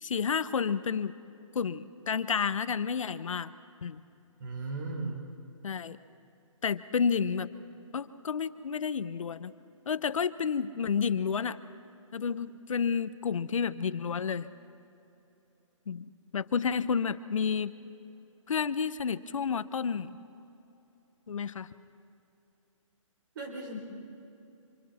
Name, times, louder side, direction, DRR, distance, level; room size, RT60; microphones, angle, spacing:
voice 1, 0.0-1.1 1.5-3.5 3.8-4.0 5.6-6.0 6.6-7.5 7.9-9.5 9.9-11.6 12.1-14.5 15.9-17.7 18.5-20.2 21.3-21.7, left 6 dB, 75° left, 14 dB, 0.9 m, -30 dB
voice 2, 4.4-5.2 23.3-23.8, right 3 dB, 40° right, 1 dB, 4.3 m, -36 dB
27.0 x 26.5 x 4.3 m, 2.9 s
hypercardioid pair, 160°, 17 cm